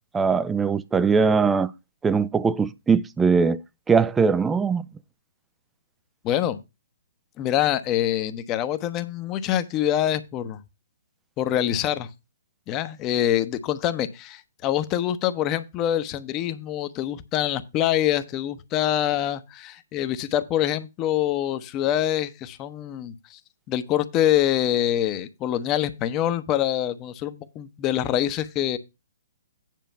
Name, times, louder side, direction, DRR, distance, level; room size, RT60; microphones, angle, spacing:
voice 1, 0.1-1.7 2.0-3.6 3.9-4.9, right 5 dB, 10° right, 0.5 m, -21 dB
voice 2, 6.2-6.6 7.4-10.6 11.4-12.1 12.7-23.4 23.7-28.8, left 11 dB, 25° left, 0.9 m, -25 dB
9.3 x 5.0 x 5.7 m
figure-of-eight pair, 125°, 0 cm